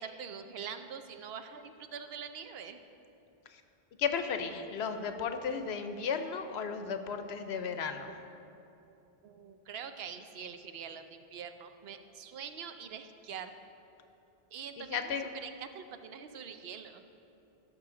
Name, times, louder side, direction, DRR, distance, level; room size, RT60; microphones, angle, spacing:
voice 1, 0.0-2.8 9.2-13.5 14.5-15.1 15.4-17.0, right 7 dB, 75° right, 8 dB, 0.8 m, -44 dB
voice 2, 4.0-8.1 14.8-15.3, left 6 dB, 90° left, 8 dB, 0.9 m, -34 dB
15.5 x 6.3 x 3.8 m, 2.9 s
omnidirectional pair, 1.0 m